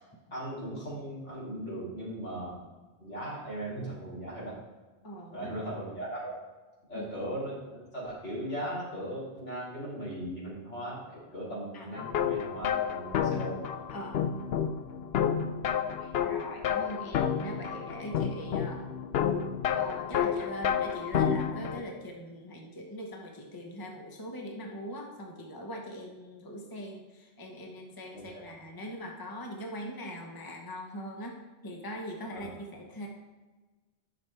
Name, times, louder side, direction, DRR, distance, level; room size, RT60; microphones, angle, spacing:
voice 1, 0.3-2.6 3.0-4.5 5.3-6.3 6.9-7.5 7.9-13.6 28.1-28.4 32.3-32.5, right 1 dB, 85° left, -7 dB, 3.5 m, -38 dB
voice 2, 5.0-5.5 6.9-7.1 11.7-11.9 13.9-14.2 16.0-18.9 19.7-31.4 31.6-33.1, equal, 20° left, 1 dB, 1.0 m, -41 dB
sound 1, 12.0-21.8, left 8 dB, 65° left, 0.8 m, -30 dB
10.5 x 6.0 x 3.4 m, 1.3 s
omnidirectional pair, 1.2 m